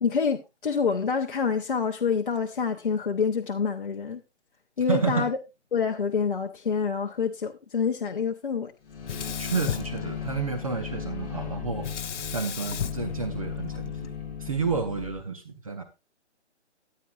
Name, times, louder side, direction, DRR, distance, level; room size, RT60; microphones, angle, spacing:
voice 1, 0.0-4.2 4.8-5.4 5.7-8.7, left 6 dB, 45° left, 0.9 m, -27 dB
voice 2, 4.9-5.3 9.4-11.9 12.3-14.1 14.4-15.8, right 5 dB, 30° right, 1.0 m, -30 dB
sound 1, 8.8-15.2, left 6 dB, 10° left, 1.4 m, -36 dB
Sink (filling or washing), 9.0-10.7 11.8-14.1, left 9 dB, 75° left, 0.6 m, -35 dB
14.5 x 9.3 x 2.5 m
hypercardioid pair, 170°, 36 cm